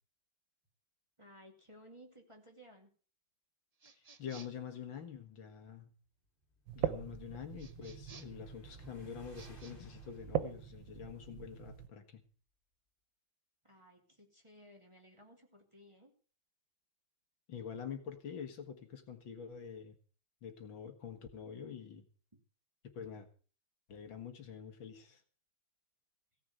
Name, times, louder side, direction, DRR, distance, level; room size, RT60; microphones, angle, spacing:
voice 1, 1.2-2.9 13.6-16.1 22.3-22.4, equal, 15° right, 2 dB, 2.7 m, -58 dB
sound 1, 3.8-4.7 7.6-8.5 9.3-9.8, right 5 dB, 60° right, 0.4 m, -57 dB
voice 2, 3.9-5.9 6.7-12.3 17.5-20.0 20.4-22.0 23.0-23.3 23.9-25.2, left 7 dB, 75° left, 5 dB, 2.5 m, -46 dB
sound 2, 6.2-11.7, left 1 dB, 25° left, 3.1 m, -62 dB
sound 3, 6.7-11.9, right 10 dB, 75° right, 1.8 m, -41 dB
16.5 x 7.0 x 8.0 m, 0.41 s
omnidirectional pair, 2.1 m